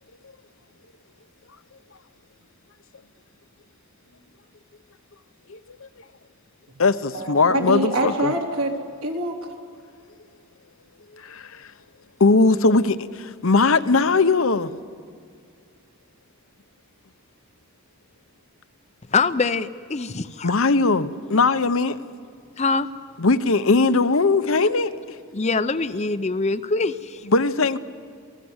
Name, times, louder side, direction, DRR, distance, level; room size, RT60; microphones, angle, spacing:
voice 1, 5.5-5.9 6.8-8.3 11.2-11.7 12.2-14.7 20.4-22.0 23.2-24.9 27.3-27.8, left 3 dB, 65° left, 0.9 m, -20 dB
voice 2, 7.1-9.4, right 1 dB, 75° right, 3.6 m, -25 dB
voice 3, 19.1-20.5 22.6-22.9 25.3-27.3, left 4 dB, 30° left, 0.6 m, -24 dB
28.0 x 18.5 x 8.0 m
head